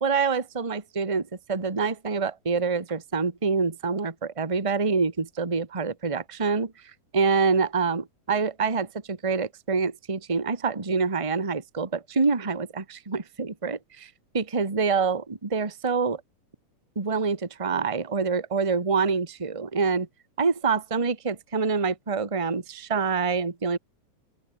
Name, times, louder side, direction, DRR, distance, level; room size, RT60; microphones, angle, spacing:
voice 1, 0.0-6.7 7.1-16.2 16.9-20.1 20.4-23.8, right 5 dB, 15° right, 1.2 m, -26 dB
open air
omnidirectional pair, 3.8 m